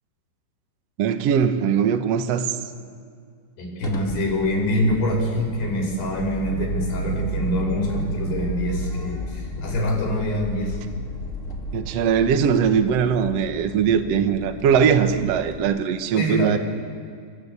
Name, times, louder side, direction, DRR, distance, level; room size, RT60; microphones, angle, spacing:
voice 1, 1.0-2.6 11.7-16.6, right 7 dB, 70° right, 8 dB, 1.5 m, -20 dB
voice 2, 3.6-10.8 16.2-16.6, left 1 dB, 75° left, 1 dB, 7.5 m, -25 dB
sound 1, 3.8-15.6, right 1 dB, 25° left, 2.1 m, -33 dB
28.5 x 24.5 x 8.3 m, 2.2 s
omnidirectional pair, 4.8 m